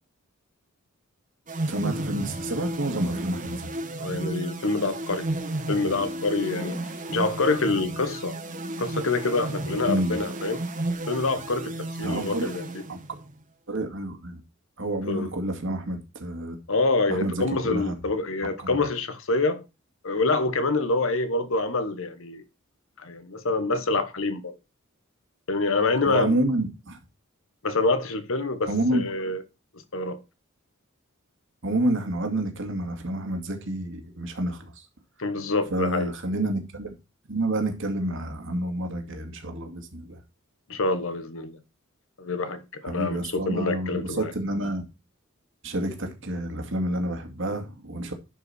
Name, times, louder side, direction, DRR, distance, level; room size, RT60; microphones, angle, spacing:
sound 1, 1.5-13.3, right 1 dB, 40° right, 1.4 m, -33 dB
voice 1, 1.7-3.7 9.9-10.2 12.0-12.5 12.9-13.0 13.7-14.4 14.8-16.6 17.1-18.0 18.6-18.8 26.1-27.0 28.7-29.0 31.6-34.8 35.7-36.9 37.3-40.2 42.8-44.8 45.6-48.1, right 1 dB, 65° right, 2.3 m, -29 dB
voice 2, 4.0-5.3 5.7-6.8 7.1-8.4 8.8-10.6 11.1-12.8 15.1-15.3 16.7-19.6 20.0-22.4 23.0-24.5 25.5-26.4 27.6-29.4 29.9-30.2 35.2-36.1 40.7-41.6 42.2-44.3, left 3 dB, 70° left, 1.1 m, -26 dB
11.0 x 5.5 x 4.3 m
head